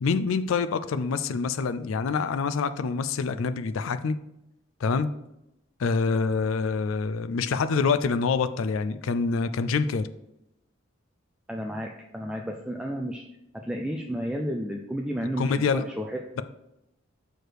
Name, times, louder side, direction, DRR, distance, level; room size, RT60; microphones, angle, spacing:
voice 1, 0.0-4.2 4.8-5.1 5.8-10.1 15.4-15.8, left 4 dB, 70° left, 12 dB, 0.4 m, -26 dB
voice 2, 11.5-13.2 13.5-16.2, equal, 5° right, 1 dB, 0.4 m, -32 dB
6.4 x 4.8 x 4.6 m, 0.86 s
head